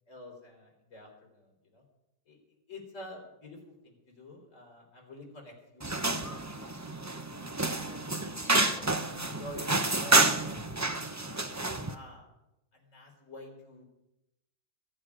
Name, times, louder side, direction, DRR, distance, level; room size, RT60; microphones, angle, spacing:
voice 1, 0.1-1.8 2.3-2.4 2.7-6.8 7.6-10.3 11.8-12.3 12.7-13.8, left 1 dB, 50° left, 1 dB, 4.2 m, -48 dB
sound 1, 5.8-11.9, right 2 dB, 25° right, 0.4 m, -29 dB
21.5 x 10.0 x 5.0 m, 0.90 s
omnidirectional pair, 1.8 m